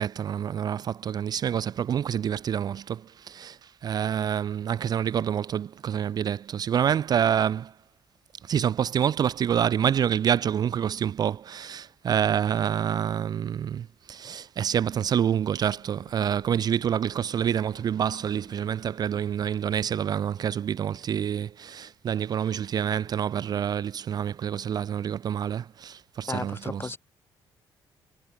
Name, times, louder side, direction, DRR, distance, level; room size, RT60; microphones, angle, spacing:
voice 1, 0.0-7.7 8.4-27.0, right 9 dB, 50° right, 0.4 m, -27 dB
sound 1, 15.6-20.2, left 12 dB, 75° left, 5.8 m, -57 dB
voice 2, 26.3-27.0, left 3 dB, 25° left, 3.2 m, -34 dB
cardioid pair, 85°, 9 cm